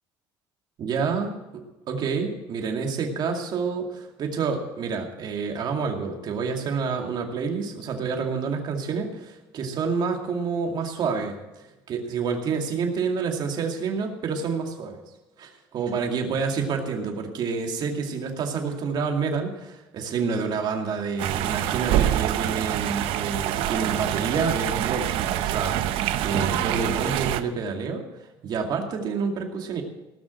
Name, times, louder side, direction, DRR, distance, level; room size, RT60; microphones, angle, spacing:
voice 1, 0.8-15.0 15.4-29.8, right 5 dB, 50° right, 3 dB, 2.3 m, -28 dB
sound 1, 21.2-27.4, right 13 dB, 75° right, 0.8 m, -26 dB
18.0 x 6.3 x 7.7 m, 1.0 s
cardioid pair, 125°, 9 cm